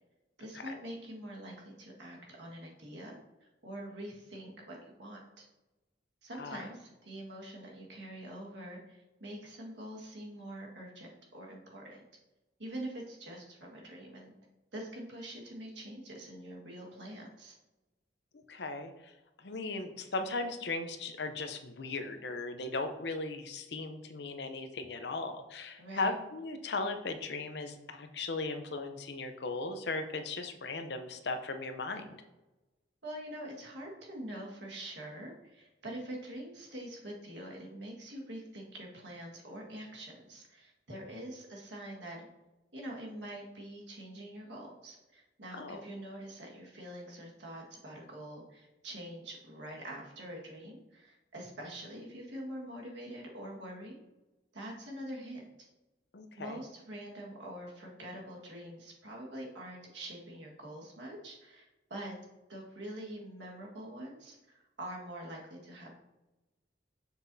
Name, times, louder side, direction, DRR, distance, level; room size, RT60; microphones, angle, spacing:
voice 1, 0.4-5.5 6.2-12.0 12.6-14.3 14.7-17.5 25.8-26.1 33.0-42.2 42.7-54.0 54.5-55.5 56.4-62.1 62.5-65.9, right 1 dB, 80° right, -2 dB, 1.7 m, -45 dB
voice 2, 18.5-19.1 19.4-32.2 45.5-45.8 56.1-56.6, left 3 dB, 70° left, 7 dB, 0.7 m, -37 dB
7.3 x 6.0 x 2.7 m, 1.1 s
head